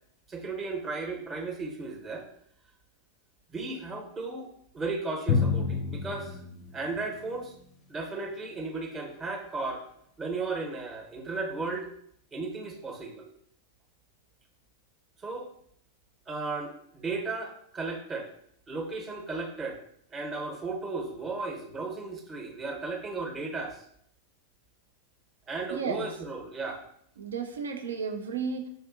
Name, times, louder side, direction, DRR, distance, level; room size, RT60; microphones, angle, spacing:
voice 1, 0.3-2.3 3.5-4.5 4.7-6.4 6.7-7.5 7.9-9.8 10.2-11.9 12.3-13.3 15.2-15.5 16.3-18.3 18.7-19.8 20.1-23.8 25.5-26.8, right 3 dB, 20° right, 0 dB, 0.9 m, -35 dB
Drum, 5.3-7.7, left 5 dB, 35° left, 0.5 m, -30 dB
voice 2, 25.7-26.1 27.2-28.7, right 5 dB, 70° right, 4 dB, 0.6 m, -33 dB
6.2 x 2.5 x 2.5 m, 0.69 s
figure-of-eight pair, 90°, 0 cm